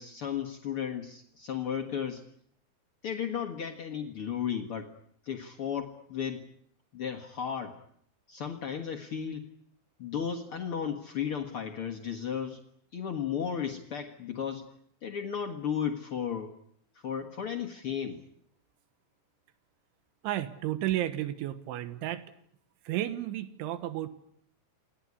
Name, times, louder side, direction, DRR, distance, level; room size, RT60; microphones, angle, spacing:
voice 1, 0.0-2.2 3.0-4.9 5.2-6.5 6.9-7.8 8.3-9.5 10.0-12.6 12.9-14.7 15.0-16.6 16.9-18.2, left 8 dB, 75° left, 3 dB, 1.2 m, -34 dB
voice 2, 20.2-22.2 22.9-24.1, right 13 dB, 90° right, 12 dB, 3.7 m, -32 dB
28.5 x 20.0 x 9.8 m, 0.69 s
omnidirectional pair, 5.3 m